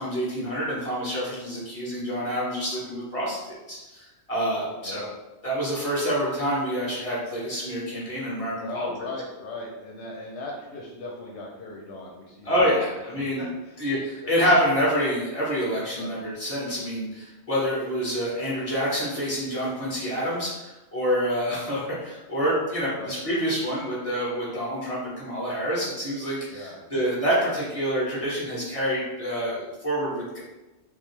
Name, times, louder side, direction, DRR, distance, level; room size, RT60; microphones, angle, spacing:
voice 1, 0.0-5.1 5.4-8.9 12.4-13.4 13.8-30.4, equal, 30° left, -7 dB, 1.7 m, -27 dB
voice 2, 8.6-12.9 13.2-14.3 16.0-16.2 22.9-23.2 26.5-26.8, left 2 dB, 80° left, -2 dB, 1.0 m, -38 dB
5.8 x 2.0 x 3.2 m, 1.1 s
omnidirectional pair, 1.1 m